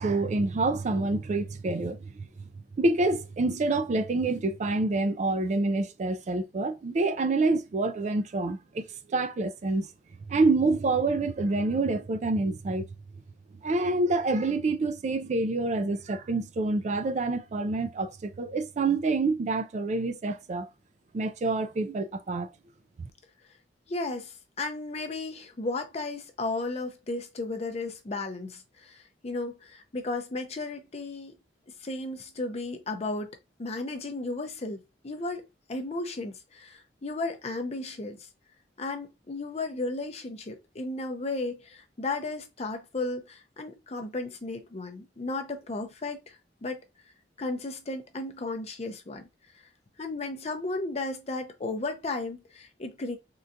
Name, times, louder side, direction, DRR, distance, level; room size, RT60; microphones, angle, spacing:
voice 1, 0.0-2.1 2.8-9.9 10.2-12.9 13.6-20.7 21.1-22.5 23.0-23.1, right 3 dB, 40° right, 0.3 m, -27 dB
voice 2, 23.9-31.4 31.8-33.3 33.6-38.3 38.8-46.8 47.4-49.3 49.6-49.7 50.0-53.2, left 2 dB, 35° left, 0.5 m, -34 dB
3.7 x 2.3 x 2.6 m
head